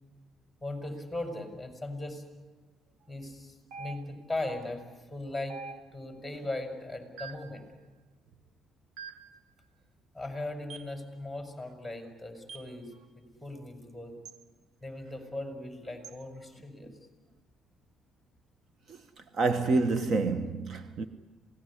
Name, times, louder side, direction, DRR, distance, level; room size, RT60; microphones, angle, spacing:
voice 1, 0.6-2.2 3.1-4.8 5.1-5.6 5.9-7.7 10.1-14.2 14.8-16.9, left 2 dB, ahead, 5.5 m, -38 dB
sound 1, 3.7-4.4 5.5-6.2 7.2-7.6 9.0-9.4 10.7-11.0 12.5-12.8 14.2-14.4 16.0-16.2, right 5 dB, 90° right, 1.4 m, -45 dB
voice 2, 19.3-21.0, right 3 dB, 55° right, 1.2 m, -27 dB
27.0 x 18.5 x 9.9 m
cardioid pair, 110°, 0 cm